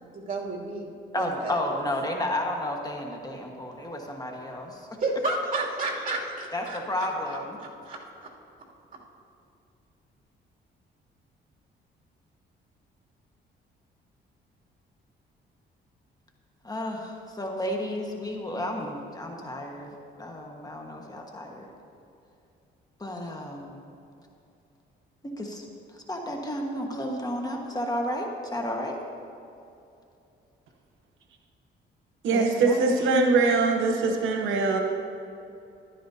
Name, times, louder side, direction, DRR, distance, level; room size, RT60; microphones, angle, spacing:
voice 1, 0.0-1.6 5.0-8.0, right 2 dB, 40° right, -4 dB, 2.8 m, -32 dB
voice 2, 1.1-4.9 6.5-7.6 16.6-21.7 23.0-23.8 25.2-25.7 26.1-29.0 32.3-32.9, left 1 dB, 20° left, 1 dB, 1.4 m, -32 dB
voice 3, 32.2-34.8, right 3 dB, 80° right, 3 dB, 1.0 m, -22 dB
14.5 x 12.0 x 2.8 m, 2.7 s
cardioid pair, 90°, 20 cm